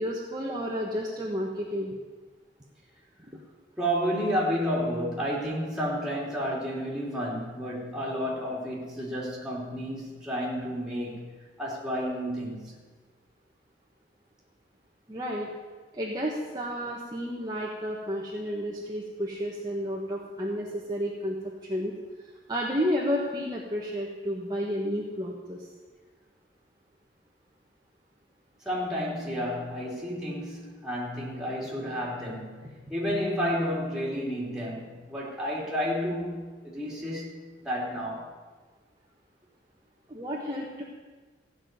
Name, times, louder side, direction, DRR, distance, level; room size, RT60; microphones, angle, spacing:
voice 1, 0.0-1.9 15.1-15.5 15.9-21.9 22.2-25.7 40.1-40.8, equal, 20° right, -3 dB, 1.4 m, -31 dB
voice 2, 3.8-11.3 11.6-12.8 28.6-37.3 37.6-38.3, equal, 5° right, -5 dB, 3.2 m, -31 dB
15.5 x 6.2 x 9.4 m, 1.4 s
head